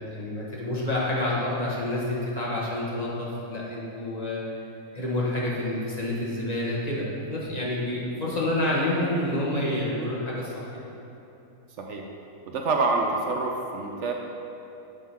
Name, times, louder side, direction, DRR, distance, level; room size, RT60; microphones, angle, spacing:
voice 1, 0.1-4.4 4.9-10.7, left 1 dB, 30° left, -6 dB, 1.2 m, -28 dB
voice 2, 12.5-14.1, right 3 dB, 65° right, 1 dB, 0.8 m, -26 dB
8.2 x 3.8 x 5.6 m, 2.9 s
omnidirectional pair, 1.6 m